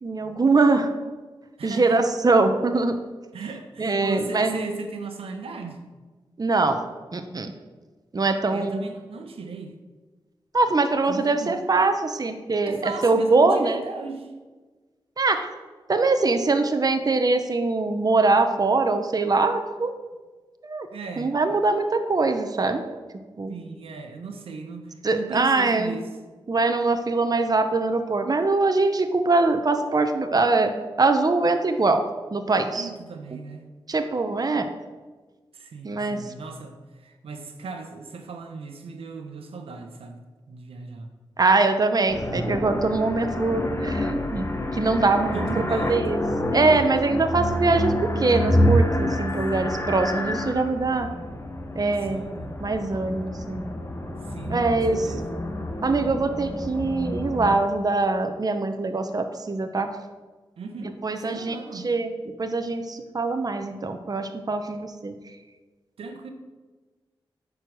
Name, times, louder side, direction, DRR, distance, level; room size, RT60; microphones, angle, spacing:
voice 1, 0.0-0.9 1.6-3.0 3.8-4.6 6.4-6.8 7.1-7.5 8.1-8.8 10.5-12.8 13.0-13.8 15.2-15.5 15.9-19.9 20.6-20.9 21.2-22.8 23.4-23.6 25.0-26.0 26.5-30.7 31.0-32.0 32.3-32.9 33.9-34.7 35.8-36.2 41.4-44.5 44.7-46.2 46.5-51.1 51.7-52.3 52.6-53.6 54.5-55.0 55.8-59.9 60.8-61.6 61.8-62.1 62.4-65.2, right 3 dB, 40° right, 7 dB, 0.9 m, -23 dB
voice 2, 1.6-2.0 3.3-5.8 8.5-9.8 11.1-11.6 12.6-14.3 20.9-21.3 23.5-26.1 32.7-33.7 35.5-41.1 45.3-46.3 49.5-49.8 51.9-52.6 54.2-55.3 60.6-61.9 66.0-66.3, right 4 dB, 90° right, 5 dB, 1.0 m, -37 dB
sound 1, 42.1-57.6, equal, 30° left, 1.3 m, -28 dB
9.8 x 4.9 x 6.3 m, 1.3 s
cardioid pair, 55°, 9 cm